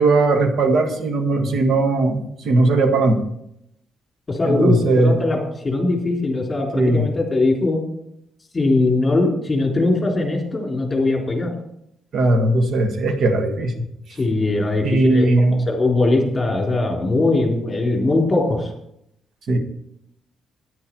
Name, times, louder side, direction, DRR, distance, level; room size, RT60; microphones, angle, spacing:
voice 1, 0.0-3.2 4.4-5.2 6.7-7.1 12.1-13.9 14.8-15.7 19.5-19.6, right 2 dB, 60° right, 6 dB, 1.6 m, -18 dB
voice 2, 4.3-5.4 5.6-7.8 8.5-11.5 14.1-18.7, left 2 dB, 25° left, 0 dB, 3.7 m, -20 dB
10.0 x 9.7 x 4.7 m, 0.77 s
cardioid pair, 90°, 0 cm